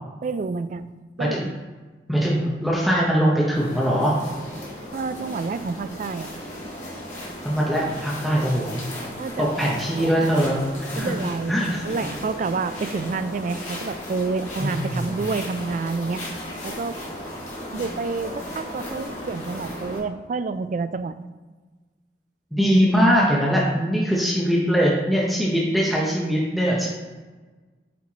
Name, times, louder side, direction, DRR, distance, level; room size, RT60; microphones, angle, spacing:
voice 1, 0.2-0.9 1.2-1.4 4.9-6.3 9.2-10.1 11.0-11.5 11.8-16.2 16.6-17.0 17.7-21.2, right 4 dB, 45° right, 12 dB, 0.3 m, -29 dB
voice 2, 2.1-4.1 7.4-8.8 9.4-11.1 11.5-12.0 14.6-15.1 22.5-26.9, equal, ahead, -5 dB, 0.8 m, -21 dB
sound 1, 3.5-20.0, left 1 dB, 40° left, 2.0 m, -36 dB
8.4 x 4.5 x 2.9 m, 1.3 s
head